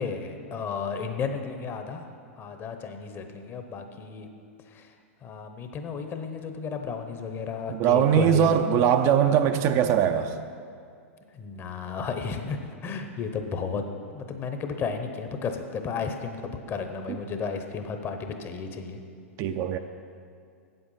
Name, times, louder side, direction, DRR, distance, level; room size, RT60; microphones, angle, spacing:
voice 1, 0.0-2.1 2.4-4.3 4.7-4.9 5.2-8.6 8.9-9.0 11.3-13.9 14.1-19.0, left 5 dB, 30° left, 6 dB, 0.9 m, -33 dB
voice 2, 7.7-10.4 19.4-19.8, right 9 dB, 40° right, 8 dB, 0.5 m, -21 dB
8.0 x 7.9 x 5.6 m, 2.3 s
hypercardioid pair, 110°, 8 cm